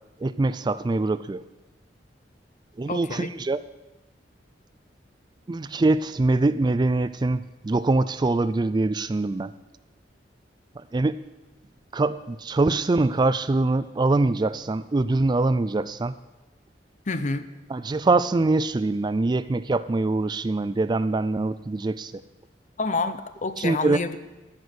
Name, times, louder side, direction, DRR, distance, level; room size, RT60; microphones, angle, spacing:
voice 1, 0.2-1.4 2.8-3.6 5.5-9.5 10.8-11.2 11.9-16.1 17.7-22.2 23.6-24.0, right 2 dB, 25° right, 15 dB, 0.4 m, -23 dB
voice 2, 2.9-3.3 17.1-17.5 22.8-24.2, left 3 dB, 45° left, 12 dB, 0.8 m, -28 dB
14.0 x 6.3 x 9.5 m, 1.1 s
head